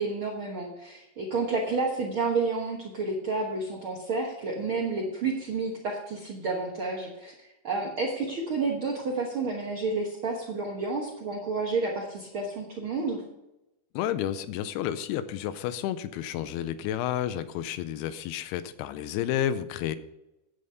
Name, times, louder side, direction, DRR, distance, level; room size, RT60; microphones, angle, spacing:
voice 1, 0.0-13.2, right 3 dB, 85° right, -1 dB, 1.1 m, -30 dB
voice 2, 13.9-20.0, left 11 dB, 90° left, 13 dB, 2.6 m, -31 dB
9.4 x 8.9 x 5.5 m, 0.93 s
omnidirectional pair, 4.5 m